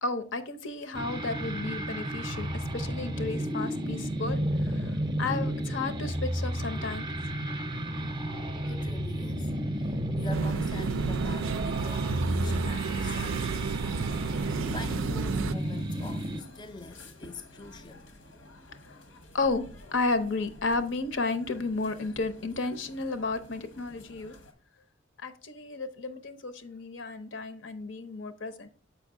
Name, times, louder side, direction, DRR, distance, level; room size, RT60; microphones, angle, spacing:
voice 1, 0.0-4.9 5.2-7.1 19.3-24.3 25.2-28.7, left 3 dB, 70° left, 0.7 m, -33 dB
sound 1, 0.9-16.4, right 1 dB, 25° right, 0.6 m, -32 dB
voice 2, 8.7-14.2 14.7-18.1, left 3 dB, 20° left, 0.3 m, -45 dB
sound 2, 10.3-15.5, right 5 dB, 80° right, 0.4 m, -31 dB
sound 3, 14.1-24.5, left 1 dB, 90° left, 1.2 m, -51 dB
7.0 x 5.3 x 3.7 m
head